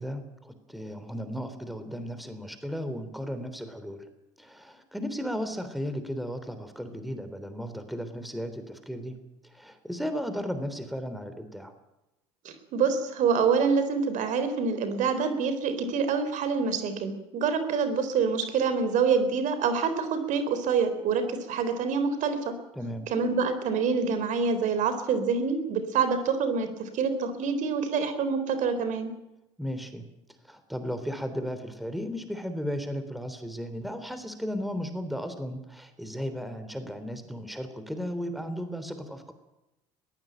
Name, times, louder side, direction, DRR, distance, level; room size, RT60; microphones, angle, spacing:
voice 1, 0.0-4.0 4.4-9.2 9.5-11.7 22.8-23.1 29.6-30.0 30.5-39.3, equal, ahead, 9 dB, 3.5 m, -35 dB
voice 2, 12.5-22.5 23.1-29.1, right 5 dB, 60° right, 10 dB, 3.8 m, -26 dB
21.0 x 16.0 x 9.0 m, 0.95 s
hypercardioid pair, 75°, 15 cm